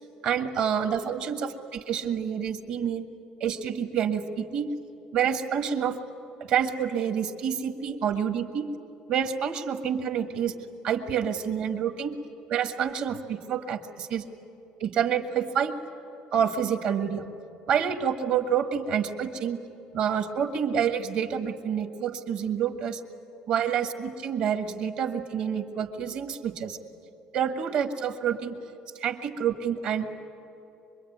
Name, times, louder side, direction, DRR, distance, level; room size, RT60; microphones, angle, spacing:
voice 1, 0.2-3.0 3.4-4.7 5.1-6.0 6.4-8.7 9.1-10.5 10.8-12.2 12.5-14.2 14.8-15.8 16.3-17.2 17.7-19.6 19.9-23.0 23.5-26.8 27.3-28.6 28.9-30.2, right 8 dB, 55° right, 7 dB, 1.6 m, -28 dB
25.0 x 22.0 x 9.4 m, 2.8 s
cardioid pair, 155°, 2 cm